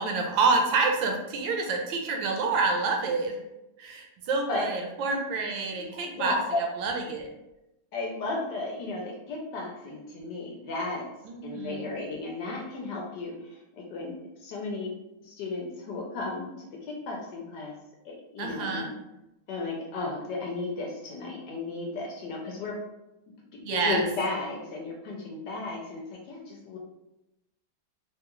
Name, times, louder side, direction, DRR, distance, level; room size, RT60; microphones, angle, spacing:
voice 1, 0.0-3.4 3.8-7.3 11.3-11.9 18.4-18.9 23.6-24.0, right 4 dB, 75° right, 2 dB, 1.3 m, -28 dB
voice 2, 5.7-6.6 7.9-11.0 11.4-14.9 15.2-17.7 18.0-18.9 19.5-22.8 23.5-26.8, left 3 dB, 70° left, -1 dB, 1.1 m, -34 dB
3.7 x 2.3 x 2.9 m, 0.92 s
omnidirectional pair, 2.2 m